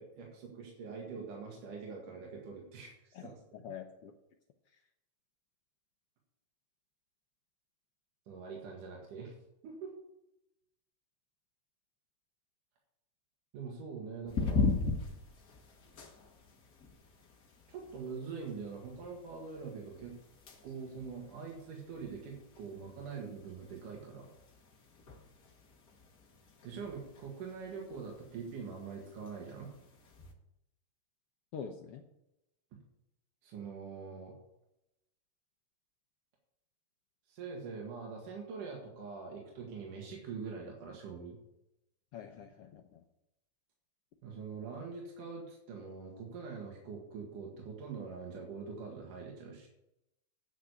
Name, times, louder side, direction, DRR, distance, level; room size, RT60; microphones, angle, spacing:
voice 1, 0.0-3.7 8.3-9.3 9.6-10.0 13.5-14.7 17.7-20.2 20.6-24.3 26.6-29.7 33.4-34.3 37.3-41.4 44.2-49.7, right 5 dB, 80° right, -1 dB, 3.4 m, -44 dB
voice 2, 3.1-4.1 4.7-4.9 31.5-32.1 42.1-43.0, left 7 dB, 75° left, 4 dB, 1.4 m, -46 dB
sound 1, 14.3-30.3, left 4 dB, 45° left, 1.2 m, -41 dB
9.5 x 6.3 x 8.2 m, 0.87 s
omnidirectional pair, 3.6 m